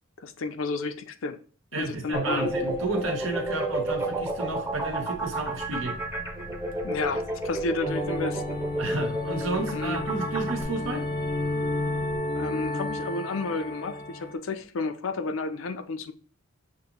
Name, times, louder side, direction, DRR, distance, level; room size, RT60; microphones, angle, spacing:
voice 1, 0.2-1.4 1.8-2.5 6.8-8.6 9.7-10.0 12.4-16.1, left 3 dB, 75° left, 0.5 m, -31 dB
voice 2, 1.7-6.0 8.8-11.1, right 3 dB, 70° right, 0.9 m, -31 dB
Microwave oven, 1.8-12.2, left 1 dB, 45° right, 0.8 m, -45 dB
sound 1, 2.1-10.6, right 2 dB, 10° right, 0.8 m, -31 dB
sound 2, 7.9-14.3, left 2 dB, 20° left, 0.5 m, -31 dB
6.5 x 2.6 x 2.9 m
head